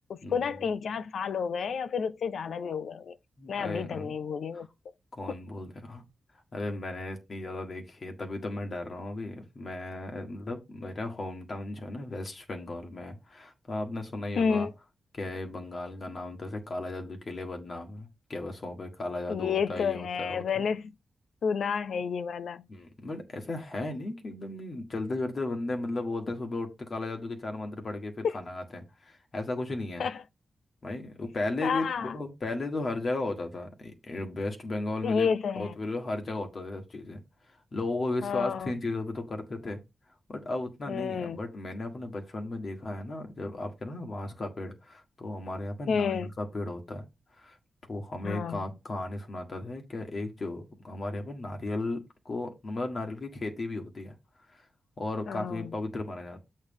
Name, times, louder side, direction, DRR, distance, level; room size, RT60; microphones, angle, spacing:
voice 1, 0.1-3.2 3.5-4.7 5.3-5.4 14.4-14.7 19.3-20.9 21.4-22.7 30.0-30.2 31.6-32.2 35.0-35.7 38.2-38.7 40.9-41.4 45.9-46.3 48.2-48.6 55.3-55.7, left 6 dB, 75° left, 0.4 m, -30 dB
voice 2, 3.4-4.2 4.5-4.6 5.1-6.0 6.5-14.7 15.1-20.6 22.7-30.1 30.8-35.3 35.5-37.2 37.5-39.8 40.3-47.0 47.3-47.6 47.9-54.1 54.5-54.7 55.0-56.4, left 2 dB, 40° left, 1.6 m, -35 dB
8.1 x 3.3 x 5.4 m
wide cardioid pair, 130°, 0 cm